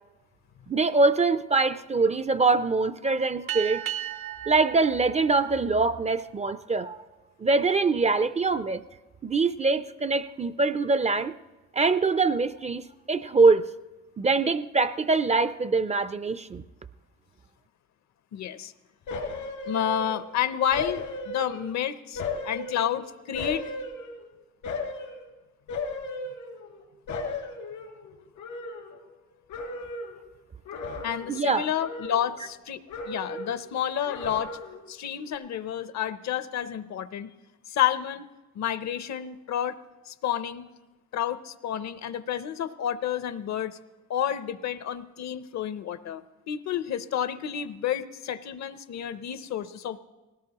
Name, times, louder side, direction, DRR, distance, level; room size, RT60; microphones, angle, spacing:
voice 1, 0.7-3.9 4.5-7.0 7.4-8.8 9.2-11.3 11.7-13.7 14.2-16.6 31.3-31.7, right 3 dB, 25° right, 14 dB, 0.4 m, -24 dB
sound 1, 3.5-6.4, right 11 dB, 80° right, 0.9 m, -36 dB
voice 2, 18.3-18.7 19.7-23.7 31.0-32.8 33.1-34.6 34.9-37.3 37.7-38.3 38.5-39.8 40.1-40.7 41.1-43.8 44.1-50.0, left 10 dB, 65° left, 14 dB, 0.7 m, -30 dB
sound 2, 19.1-20.3 20.7-21.8 22.2-24.3 24.6-25.2 25.7-26.8 27.1-29.2 29.5-30.2 30.6-31.5 31.8-32.6 32.9-33.6 34.0-34.9 35.2-35.3, left 3 dB, 85° left, 2.5 m, -36 dB
19.5 x 17.5 x 2.9 m, 1.1 s
cardioid pair, 90°, 30 cm